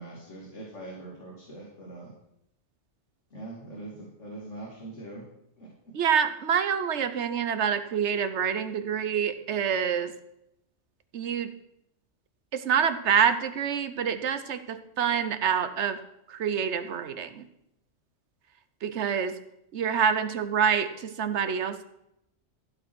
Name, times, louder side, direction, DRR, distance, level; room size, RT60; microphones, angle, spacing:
voice 1, 0.0-2.1 3.3-5.2 5.6-5.7, right 2 dB, 85° left, -4 dB, 2.9 m, -42 dB
voice 2, 5.9-10.1 11.1-11.5 12.5-16.0 16.3-17.4 18.8-19.4 19.7-21.8, right 7 dB, 75° right, 11 dB, 1.2 m, -26 dB
14.5 x 6.1 x 6.2 m, 0.81 s
omnidirectional pair, 1.2 m